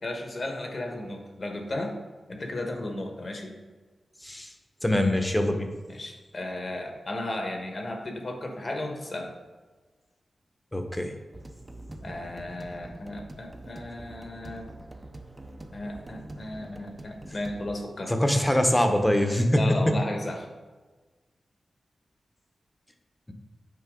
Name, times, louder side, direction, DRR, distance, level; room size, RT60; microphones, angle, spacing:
voice 1, 0.0-2.0 2.3-3.6 5.9-9.3 12.0-14.7 15.7-18.1 19.5-20.5, left 1 dB, 50° left, 3 dB, 1.3 m, -34 dB
voice 2, 4.2-4.5 4.8-5.7 10.7-11.1 18.1-19.9, left 1 dB, 15° left, 5 dB, 0.9 m, -23 dB
sound 1, 11.3-17.8, right 1 dB, 25° right, 0.7 m, -44 dB
8.3 x 4.6 x 3.8 m, 1.3 s
cardioid pair, 60°, 0 cm